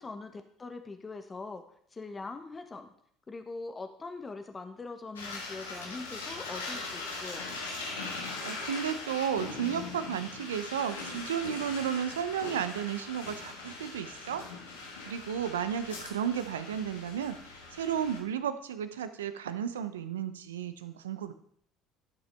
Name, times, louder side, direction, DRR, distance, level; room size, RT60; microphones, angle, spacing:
voice 1, 0.0-1.6 1.9-2.9 3.3-7.5, left 3 dB, 25° left, 7 dB, 1.0 m, -42 dB
sound 1, 5.2-18.2, left 3 dB, 90° left, 1.5 m, -40 dB
voice 2, 8.4-14.4 15.1-17.4 17.7-21.3, right 8 dB, 85° right, 11 dB, 0.6 m, -33 dB
11.5 x 6.1 x 3.4 m, 0.65 s
hypercardioid pair, 65°, 0 cm